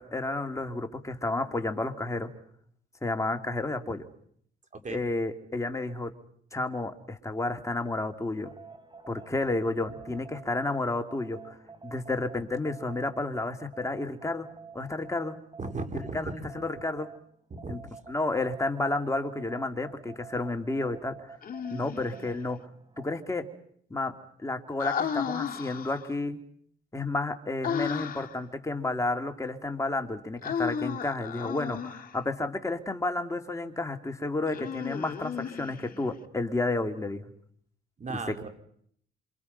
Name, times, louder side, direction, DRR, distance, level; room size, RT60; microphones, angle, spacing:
voice 1, 0.0-2.3 3.0-4.1 4.9-6.1 6.5-8.5 9.1-11.5 11.8-14.5 14.7-15.3 15.9-17.1 17.7-17.8 18.1-21.3 21.7-22.7 23.0-23.5 23.9-26.4 26.9-37.3 38.3-38.4, left 2 dB, 15° left, 4 dB, 2.8 m, -31 dB
sound 1, 8.3-17.2 17.6-23.6, right 5 dB, 25° right, 3.5 m, -49 dB
voice 2, 15.6-16.4 17.5-17.7 38.0-38.5, right 3 dB, 40° right, 6 dB, 3.9 m, -36 dB
Human voice, 21.4-22.3 24.8-26.1 27.6-28.4 30.4-32.2 34.5-36.1, left 7 dB, 45° left, 2.1 m, -34 dB
28.0 x 27.0 x 5.5 m, 0.64 s
cardioid pair, 90°, 20 cm